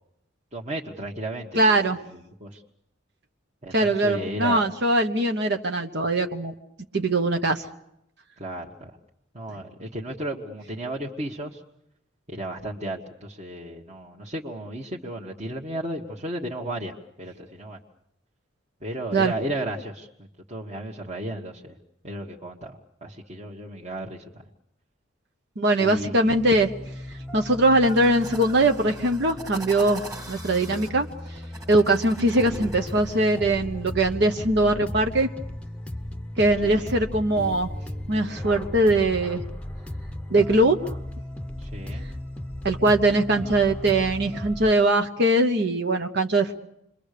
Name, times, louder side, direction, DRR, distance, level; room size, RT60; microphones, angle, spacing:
voice 1, 0.5-1.9 2.4-2.6 3.6-4.7 8.4-8.9 9.3-11.6 12.3-17.8 18.8-21.8 22.0-24.4 25.8-26.3 36.6-37.0 41.6-42.1, right 1 dB, 35° right, -3 dB, 1.6 m, -34 dB
voice 2, 1.5-2.0 3.7-6.5 6.9-7.7 19.1-19.3 25.6-26.7 27.3-31.1 31.7-35.3 36.4-37.7 38.1-39.4 40.3-40.9 42.6-46.6, right 1 dB, 55° right, 5 dB, 1.2 m, -21 dB
sound 1, 26.3-44.7, left 1 dB, 5° left, 0.9 m, -36 dB
sound 2, 27.8-33.4, right 2 dB, 15° right, 2.2 m, -42 dB
28.5 x 22.5 x 6.8 m, 0.81 s
head